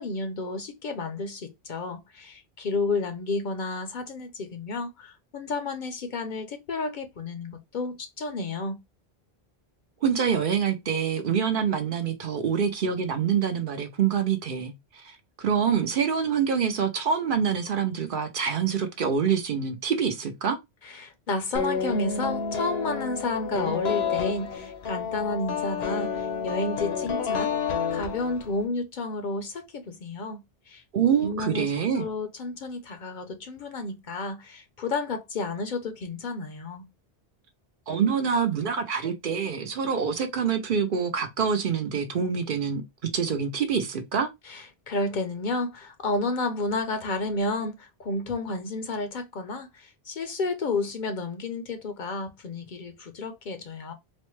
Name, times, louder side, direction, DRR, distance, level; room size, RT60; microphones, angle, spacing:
voice 1, 0.0-8.8 20.8-27.5 27.9-30.4 30.7-30.8 31.2-31.7 32.0-36.8 44.5-53.9, left 3 dB, 55° left, 0.7 m, -31 dB
voice 2, 10.0-14.7 15.0-20.6 30.9-32.0 37.9-42.8 43.1-44.3, right 7 dB, 60° right, 0.8 m, -26 dB
sound 1, 21.5-28.6, left 6 dB, 80° left, 1.0 m, -29 dB
4.1 x 2.1 x 3.0 m
omnidirectional pair, 1.1 m